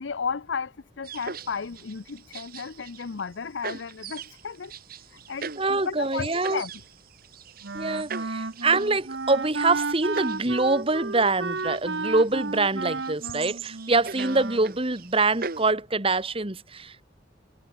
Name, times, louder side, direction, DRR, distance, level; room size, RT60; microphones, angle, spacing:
voice 1, 0.0-4.7 5.3-6.7, left 5 dB, 75° left, 0.6 m, -34 dB
sound 1, 1.0-3.3 3.6-15.7, right 5 dB, 50° right, 1.4 m, -40 dB
voice 2, 5.6-6.6 7.7-17.0, right 3 dB, 30° right, 1.8 m, -25 dB
Wind instrument woodwind instrument, 7.6-14.7, right 3 dB, 65° right, 1.2 m, -33 dB
head